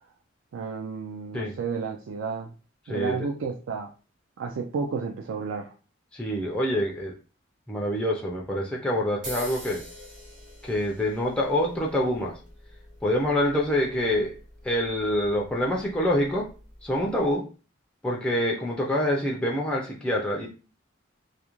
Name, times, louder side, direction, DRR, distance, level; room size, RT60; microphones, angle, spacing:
voice 1, 0.5-2.5 2.9-3.9 4.4-5.7, right 5 dB, 75° right, 2 dB, 0.3 m, -31 dB
voice 2, 2.9-3.3 6.1-7.2 7.7-9.8 10.6-12.4 13.0-14.3 14.6-16.5 16.8-17.5 18.0-20.5, left 1 dB, 5° left, -2 dB, 0.3 m, -26 dB
sound 1, 9.2-17.3, equal, 40° right, 0.8 m, -45 dB
2.4 x 2.0 x 2.9 m, 0.35 s
head